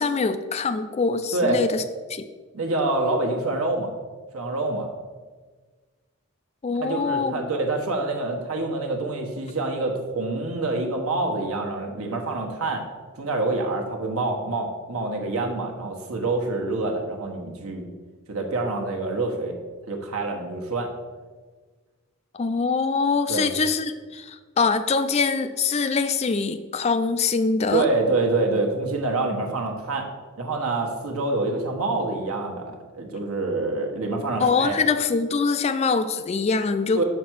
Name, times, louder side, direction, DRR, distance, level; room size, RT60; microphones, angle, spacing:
voice 1, 0.0-1.8 2.1-2.3 6.6-7.3 22.3-27.9 29.3-29.4 34.4-37.0, left 4 dB, 30° left, 10 dB, 0.3 m, -24 dB
voice 2, 2.5-3.9 4.3-4.9 6.7-12.8 13.2-17.9 18.3-19.6 19.9-20.9 23.3-23.5 27.7-30.1 30.4-34.8 36.9-37.0, right 2 dB, 80° right, 1 dB, 1.2 m, -26 dB
6.0 x 4.6 x 6.1 m, 1.4 s
head